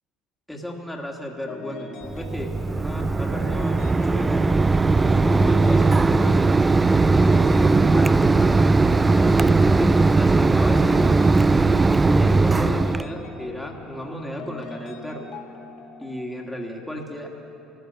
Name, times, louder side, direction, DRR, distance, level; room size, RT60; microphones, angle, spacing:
voice 1, 0.5-4.5 5.0-6.5 7.3-11.0 11.5-15.3 16.0-17.3, equal, 5° left, 0 dB, 1.8 m, -34 dB
sound 1, 1.5-16.2, left 3 dB, 55° left, 2.3 m, -41 dB
Mechanisms, 2.1-13.0, right 3 dB, 20° right, 0.4 m, -18 dB
13.5 x 13.5 x 6.9 m, 2.8 s
supercardioid pair, 90°, 0 cm